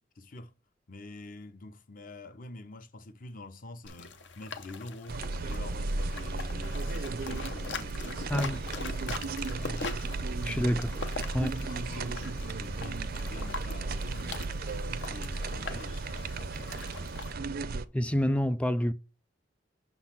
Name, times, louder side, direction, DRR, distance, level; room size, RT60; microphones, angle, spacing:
voice 1, 0.2-0.5 0.9-10.7 11.4-17.1, left 2 dB, 50° left, 0.7 m, -47 dB
sound 1, 3.8-17.3, left 4 dB, 75° left, 0.9 m, -43 dB
sound 2, 5.1-17.8, right 3 dB, 55° right, 0.5 m, -35 dB
voice 2, 8.3-8.6 10.4-10.9 11.3-11.7 17.9-18.9, equal, 5° left, 0.4 m, -28 dB
6.3 x 4.0 x 5.8 m
head